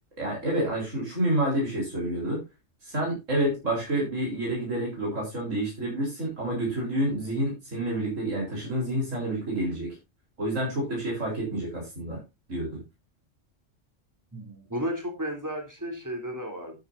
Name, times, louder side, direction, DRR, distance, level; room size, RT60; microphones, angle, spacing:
voice 1, 0.2-2.4 2.8-10.0 10.4-12.2 12.5-12.8, right 1 dB, 85° right, -3 dB, 4.4 m, -28 dB
voice 2, 14.3-16.7, equal, 15° right, 3 dB, 3.3 m, -33 dB
12.0 x 9.7 x 2.7 m, 0.24 s
omnidirectional pair, 1.3 m